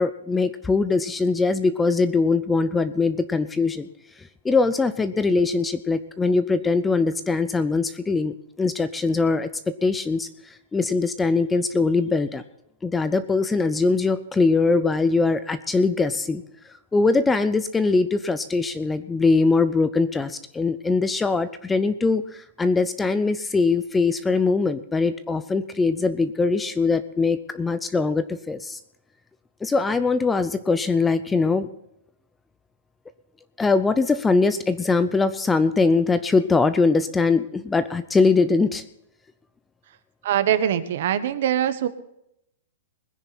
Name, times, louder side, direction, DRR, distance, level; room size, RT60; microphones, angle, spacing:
voice 1, 0.0-3.9 4.4-12.4 12.8-16.4 16.9-28.8 29.6-31.7 33.6-38.8, left 4 dB, 5° left, 13 dB, 0.5 m, -22 dB
voice 2, 40.2-41.9, right 10 dB, 50° right, 12 dB, 1.2 m, -22 dB
21.5 x 10.0 x 4.2 m, 0.80 s
hypercardioid pair, 170°, 0 cm